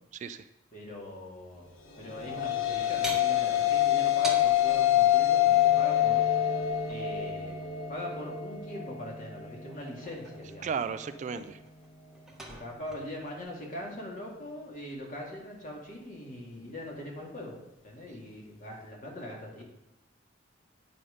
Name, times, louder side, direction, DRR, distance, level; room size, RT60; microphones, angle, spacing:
voice 1, 0.1-0.4 10.6-11.6, right 6 dB, 40° right, 12 dB, 0.3 m, -34 dB
voice 2, 0.7-1.7 2.0-6.2 6.9-7.6 7.9-10.7 11.3-11.4 12.5-17.6 17.8-19.6, left 1 dB, 40° left, -2 dB, 2.1 m, -41 dB
sound 1, 2.0-10.5, left 12 dB, 90° left, 1.1 m, -26 dB
sound 2, 3.0-4.8 6.6-7.7 9.7-10.9 11.2-13.4, right 2 dB, ahead, 1.2 m, -43 dB
9.2 x 5.4 x 5.0 m, 0.89 s
head